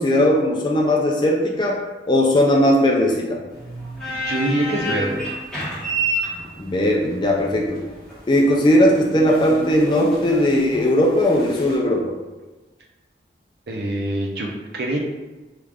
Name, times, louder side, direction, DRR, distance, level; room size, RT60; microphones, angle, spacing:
voice 1, 0.0-3.4 6.6-7.8 8.3-12.1, left 1 dB, 25° left, -1 dB, 0.4 m, -18 dB
sound 1, 3.5-11.8, right 1 dB, 5° left, 1.0 m, -30 dB
voice 2, 4.1-5.3 13.7-15.0, right 1 dB, 60° right, 0 dB, 0.5 m, -25 dB
3.1 x 2.4 x 3.4 m, 1.2 s
head